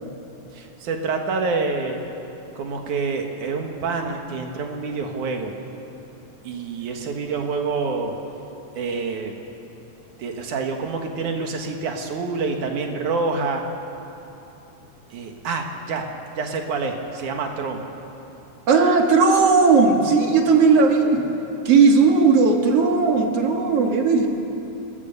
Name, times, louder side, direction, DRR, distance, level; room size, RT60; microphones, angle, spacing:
voice 1, 0.5-2.0 2.5-5.5 6.4-8.1 8.8-9.4 10.2-13.6 15.1-16.1 16.3-17.8, right 4 dB, 65° right, 3 dB, 2.9 m, -27 dB
voice 2, 18.7-21.2 21.7-24.3, right 4 dB, 50° right, 2 dB, 2.5 m, -16 dB
30.0 x 14.5 x 6.9 m, 3.0 s
omnidirectional pair, 3.9 m